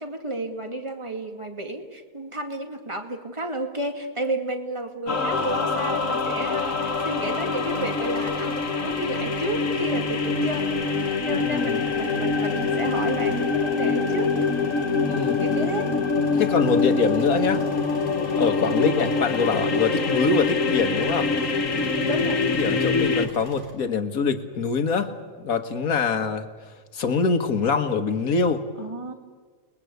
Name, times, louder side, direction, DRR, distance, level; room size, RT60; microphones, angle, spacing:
voice 1, 0.0-10.8 11.2-14.3 15.4-15.9 21.9-22.5 28.8-29.1, right 1 dB, 20° right, 4 dB, 2.3 m, -31 dB
sound 1, 5.1-23.3, left 4 dB, 65° left, 1.9 m, -24 dB
sound 2, 5.3-23.7, right 3 dB, 55° right, 4.1 m, -44 dB
voice 2, 11.4-11.8 15.1-15.4 16.4-17.6 18.4-21.3 22.5-25.1 25.4-26.5 26.9-28.6, left 5 dB, 85° left, 8 dB, 2.0 m, -24 dB
29.5 x 21.0 x 8.2 m, 1.5 s
omnidirectional pair, 1.5 m